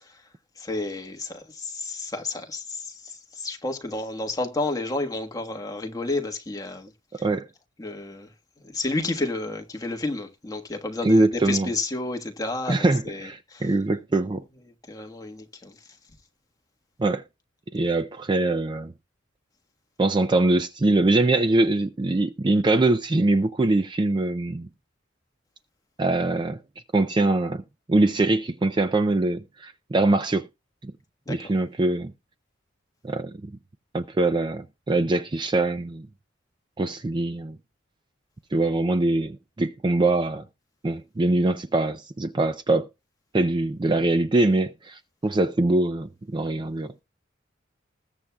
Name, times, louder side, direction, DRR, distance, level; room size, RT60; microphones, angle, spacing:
voice 1, 0.6-6.9 7.8-8.3 8.6-13.7 14.9-15.7 31.3-31.5, left 2 dB, 20° left, 1.4 m, -31 dB
voice 2, 11.0-11.7 12.7-14.4 17.0-17.2 17.7-18.9 20.0-24.7 26.0-26.6 26.9-27.6 27.9-30.5 30.8-30.9 31.3-32.1 33.0-33.5 33.9-36.1 36.8-37.6 38.5-40.4 40.8-42.9 43.3-46.9, right 2 dB, 25° right, 0.4 m, -23 dB
20.5 x 7.2 x 2.3 m
head